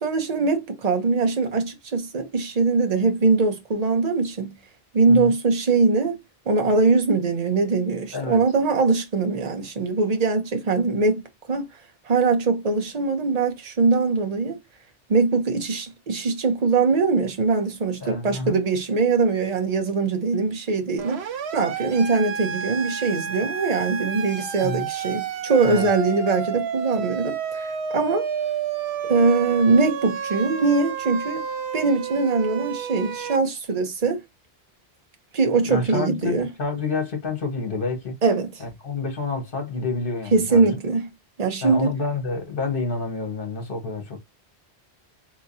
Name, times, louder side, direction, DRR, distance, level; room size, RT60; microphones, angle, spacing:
voice 1, 0.0-4.5 4.9-6.2 6.5-11.2 11.5-11.7 12.1-14.6 15.1-21.2 21.5-28.2 29.0-31.4 31.7-34.2 35.3-36.5 38.2-38.5 40.3-41.1 41.4-41.9, right 4 dB, 40° right, 0.9 m, -22 dB
voice 2, 18.0-18.6 24.6-24.9 25.6-25.9 35.7-38.1 38.6-40.8 41.6-44.2, left 3 dB, 55° left, 1.5 m, -28 dB
Siren, 21.0-33.4, right 6 dB, 75° right, 0.9 m, -30 dB
3.6 x 3.0 x 2.7 m
omnidirectional pair, 1.1 m